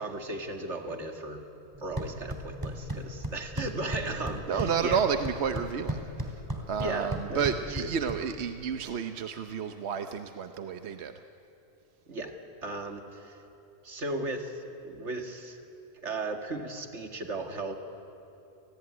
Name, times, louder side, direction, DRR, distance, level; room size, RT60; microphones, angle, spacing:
voice 1, 0.0-1.5 1.8-5.0 6.8-7.5 7.8-7.9 12.1-12.3 12.6-13.4 13.8-15.6 16.0-17.7, right 2 dB, 90° right, 4 dB, 2.4 m, -36 dB
sound 1, 1.7-8.7, right 1 dB, 20° right, 3.0 m, -37 dB
voice 2, 4.5-6.4 6.7-11.1, right 6 dB, 70° right, 8 dB, 1.1 m, -31 dB
29.5 x 19.0 x 9.6 m, 2.9 s
omnidirectional pair, 1.2 m